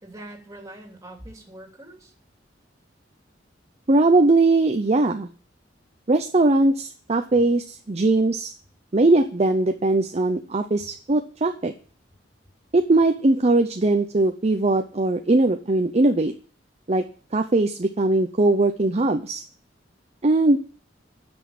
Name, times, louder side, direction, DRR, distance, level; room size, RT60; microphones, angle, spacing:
voice 1, 0.0-2.1, right 1 dB, 20° right, 1 dB, 3.0 m, -43 dB
voice 2, 3.9-5.3 6.1-8.5 8.9-11.7 12.7-16.3 16.9-17.0 17.3-19.4 20.2-20.6, right 2 dB, 35° right, 6 dB, 0.7 m, -20 dB
9.4 x 6.3 x 8.6 m, 0.41 s
head